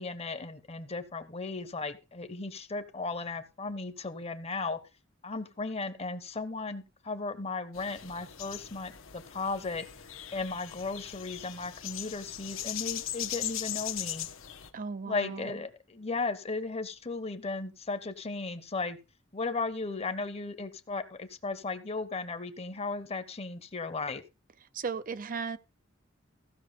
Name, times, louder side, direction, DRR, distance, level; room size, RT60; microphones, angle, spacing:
voice 1, 0.0-4.8 5.2-9.8 10.3-14.3 15.1-19.0 19.3-24.2, left 3 dB, 30° left, 1.0 m, -36 dB
sound 1, 7.7-14.7, left 11 dB, 85° left, 1.5 m, -39 dB
voice 2, 14.7-15.6 24.7-25.6, right 5 dB, 45° right, 0.6 m, -36 dB
15.5 x 6.0 x 5.1 m
head